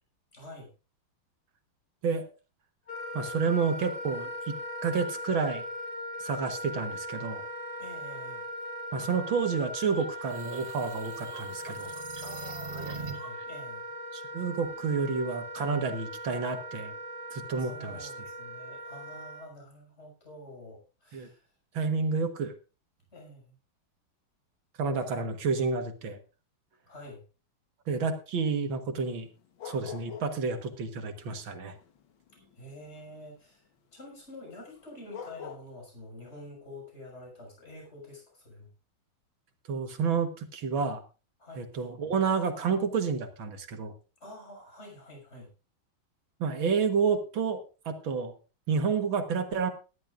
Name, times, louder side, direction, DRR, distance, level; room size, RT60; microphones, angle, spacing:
voice 1, 0.3-0.7 7.8-8.4 12.2-13.8 17.6-21.5 23.1-23.5 26.9-27.2 32.6-33.7 33.9-38.7 41.4-41.7 44.2-45.5, left 1 dB, 30° left, 0 dB, 6.6 m, -47 dB
Wind instrument woodwind instrument, 2.9-19.5, equal, 45° left, 3.6 m, -39 dB
voice 2, 3.1-5.6 6.2-7.4 8.9-11.9 14.1-16.9 17.3-18.1 21.1-21.3 21.7-22.5 24.8-26.2 27.9-29.3 29.7-31.8 39.7-41.0 41.6-43.9 46.4-48.3 48.7-49.7, right 5 dB, 70° right, 7 dB, 2.2 m, -30 dB
sound 1, 9.9-13.4, right 6 dB, 40° right, 0.9 m, -43 dB
sound 2, 29.1-30.5 30.7-33.2 34.8-34.9 35.1-35.6, left 7 dB, 70° left, 2.0 m, -43 dB
19.0 x 12.5 x 2.5 m, 0.32 s
omnidirectional pair, 2.3 m